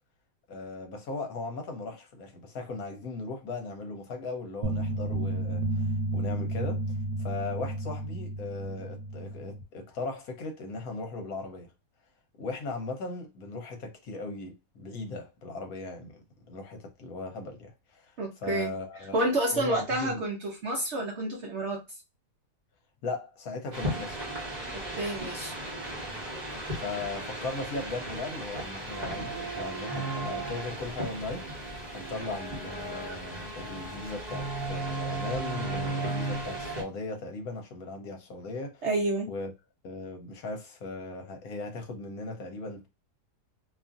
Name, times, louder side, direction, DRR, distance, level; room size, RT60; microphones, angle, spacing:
voice 1, 0.5-6.8 7.2-11.7 12.4-18.1 18.4-19.2 19.5-20.2 23.0-24.2 26.8-38.8 39.3-39.5 39.8-42.9, left 3 dB, 65° left, 1.1 m, -38 dB
sound 1, 4.6-9.6, right 2 dB, 80° right, 1.2 m, -32 dB
voice 2, 18.2-18.7 19.1-21.8 24.7-25.5 38.8-39.3, right 1 dB, 60° right, 0.8 m, -29 dB
sound 2, 23.7-36.8, right 2 dB, 30° right, 0.9 m, -35 dB
2.8 x 2.5 x 2.4 m
omnidirectional pair, 1.8 m